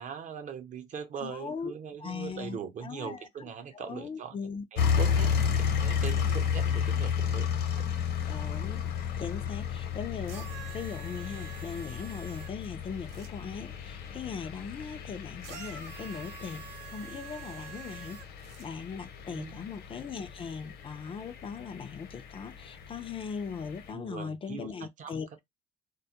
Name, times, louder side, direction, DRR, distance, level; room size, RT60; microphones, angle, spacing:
voice 1, 0.0-8.1 19.3-19.6 23.9-25.2, right 7 dB, 50° right, 0.7 m, -41 dB
voice 2, 1.2-1.7 2.0-3.3 3.7-4.6 8.3-8.9 9.2-16.6 16.9-18.2 18.6-25.4, left 6 dB, 35° left, 0.4 m, -39 dB
sound 1, 4.8-23.9, left 7 dB, 75° left, 0.8 m, -33 dB
sound 2, 10.2-13.3 15.4-18.7 19.6-19.7, right 9 dB, 80° right, 0.7 m, -47 dB
2.2 x 2.0 x 2.7 m
cardioid pair, 110°, 17 cm